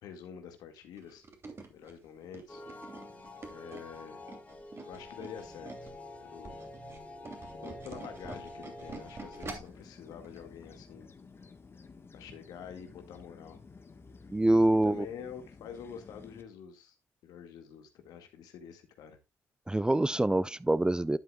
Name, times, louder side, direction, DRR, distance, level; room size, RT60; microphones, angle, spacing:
voice 1, 0.0-1.3 1.7-2.6 3.5-4.2 4.9-5.9 6.2-6.6 7.6-11.1 12.1-13.6 14.8-17.0 17.2-19.2, left 8 dB, 70° left, 2.0 m, -47 dB
Tools, 1.0-6.0 6.3-9.8 10.2-10.4 10.7-10.8, right 3 dB, 40° right, 2.9 m, -46 dB
sound 1, 2.5-9.6, left 2 dB, 20° left, 3.1 m, -47 dB
sound 2, 9.5-16.4, left 4 dB, 35° left, 1.4 m, -53 dB
voice 2, 14.3-15.0 19.7-21.2, right 1 dB, 10° right, 0.4 m, -25 dB
11.5 x 7.9 x 2.4 m
hypercardioid pair, 55°, 7 cm